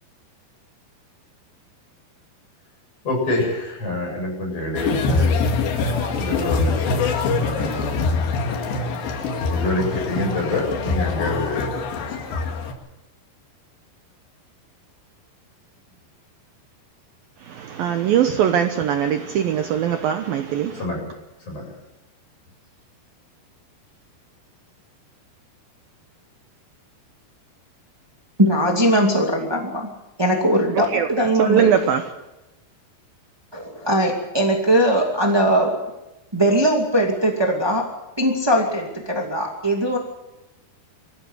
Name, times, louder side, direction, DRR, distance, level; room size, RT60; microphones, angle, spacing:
voice 1, 3.0-8.6 9.5-11.7 12.0-12.1 20.8-21.0 21.5-21.6, left 2 dB, 30° left, 0 dB, 8.6 m, -27 dB
sound 1, 4.8-12.7, left 4 dB, 75° left, 4.3 m, -24 dB
voice 2, 17.5-20.8 30.9-31.1 31.4-32.0, right 9 dB, 70° right, 6 dB, 2.4 m, -21 dB
voice 3, 28.4-29.9 30.2-31.9 33.5-35.8 36.3-37.8 38.2-40.0, right 1 dB, 15° right, 0 dB, 1.0 m, -20 dB
24.5 x 15.0 x 8.1 m, 0.98 s
omnidirectional pair, 5.1 m